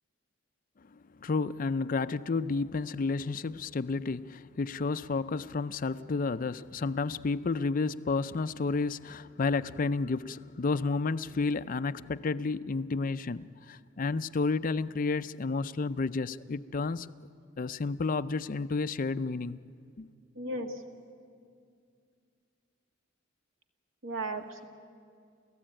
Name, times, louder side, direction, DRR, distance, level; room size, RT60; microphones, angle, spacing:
voice 1, 1.2-17.1 17.6-19.6 20.0-20.1, left 4 dB, 45° left, 0.5 m, -31 dB
voice 2, 20.4-20.8 24.0-24.7, right 2 dB, 85° right, 1.8 m, -35 dB
30.0 x 14.5 x 8.9 m
head